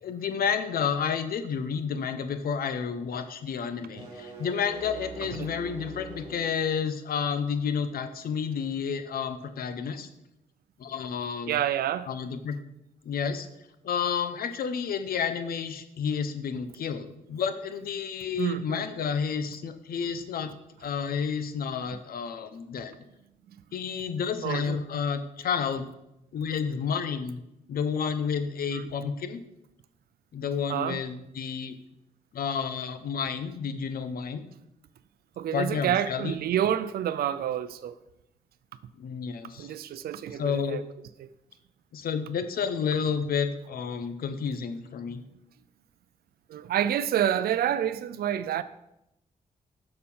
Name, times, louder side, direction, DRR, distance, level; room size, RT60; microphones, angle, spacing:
voice 1, 0.0-10.1 10.8-11.6 12.1-12.6 13.0-13.5 13.8-20.5 20.8-22.9 23.7-25.9 26.3-27.4 27.7-29.4 30.3-31.7 32.3-34.4 35.5-36.3 39.0-39.7 40.4-40.8 41.9-45.2, left 6 dB, 75° left, 0.8 m, -30 dB
sound 1, 3.8-6.6, right 1 dB, 35° right, 3.4 m, -42 dB
voice 2, 11.5-12.1 18.4-18.8 24.4-24.8 28.7-28.8 30.7-31.0 35.4-38.0 39.6-40.8 41.2-41.3 46.5-48.6, right 10 dB, 85° right, 0.5 m, -28 dB
6.8 x 6.7 x 5.5 m
cardioid pair, 85°, 15 cm